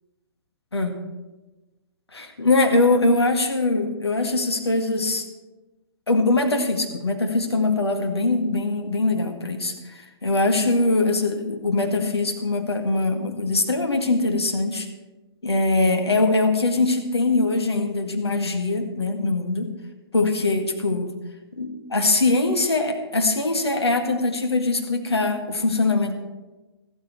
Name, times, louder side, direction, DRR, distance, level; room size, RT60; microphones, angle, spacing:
voice 1, 2.1-5.2 6.1-9.7 10.2-14.9 15.4-19.7 20.1-21.1 21.6-26.1, left 2 dB, 75° left, 4 dB, 1.9 m, -22 dB
14.0 x 13.0 x 4.6 m, 1.1 s
figure-of-eight pair, 125°, 14 cm